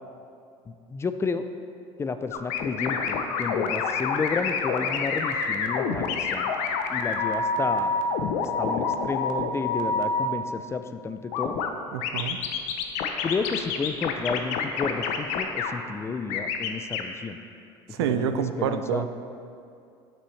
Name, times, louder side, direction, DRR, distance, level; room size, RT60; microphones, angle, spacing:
voice 1, 0.7-1.4 2.0-6.5 6.9-7.9 8.6-11.6 13.2-17.4 18.0-19.0, left 4 dB, 20° left, 9 dB, 0.4 m, -31 dB
sound 1, 2.3-10.3 11.3-11.7 12.0-15.7 16.3-17.0, left 5 dB, 65° left, 0.6 m, -27 dB
voice 2, 11.9-12.4 17.9-19.3, right 8 dB, 90° right, 10 dB, 0.4 m, -28 dB
8.2 x 6.1 x 3.2 m, 2.5 s
supercardioid pair, 95°, 13 cm